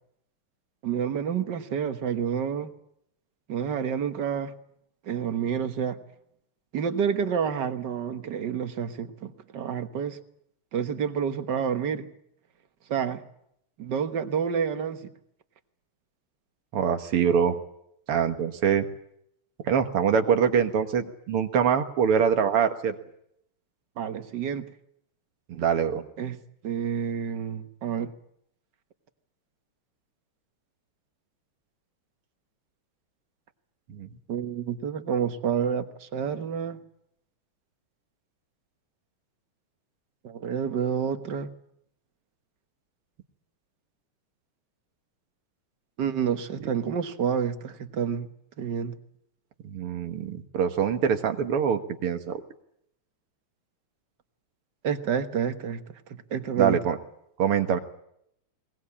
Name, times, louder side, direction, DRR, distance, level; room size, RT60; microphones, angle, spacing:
voice 1, 0.8-2.7 3.5-4.5 5.0-6.0 6.7-10.2 10.7-12.1 12.9-13.2 13.8-15.1 24.0-24.7 26.2-26.4 26.6-28.1 34.3-36.8 40.2-41.5 46.0-48.3 48.6-49.0 54.8-55.8 56.3-56.8, right 7 dB, 55° right, 9 dB, 1.8 m, -29 dB
voice 2, 16.7-17.6 18.1-18.9 19.6-23.0 25.5-26.0 33.9-34.1 49.6-52.4 56.6-57.0 57.4-57.8, right 7 dB, 85° right, 8 dB, 2.4 m, -24 dB
22.0 x 20.0 x 8.5 m, 0.75 s
omnidirectional pair, 2.4 m